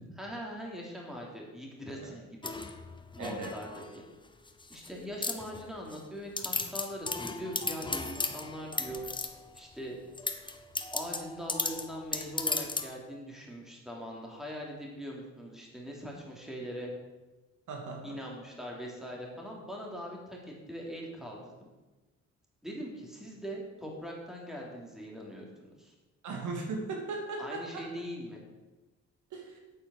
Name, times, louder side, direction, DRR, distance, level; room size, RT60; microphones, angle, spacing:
voice 1, 0.0-2.5 3.1-3.8 4.7-9.0 9.5-10.0 10.4-10.5 10.9-16.9 18.0-21.7 22.6-25.9 27.4-28.4, equal, ahead, -2 dB, 3.4 m, -41 dB
sound 1, 2.4-4.0 4.5-4.9 5.2-6.0 6.4-9.6 10.1-12.9, left 3 dB, 15° left, 1.0 m, -36 dB
voice 2, 3.2-3.5 17.7-18.2 26.2-28.0 29.3-29.6, right 3 dB, 75° right, 1 dB, 2.7 m, -38 dB
8.9 x 8.2 x 6.6 m, 1.1 s
cardioid pair, 90°, 30 cm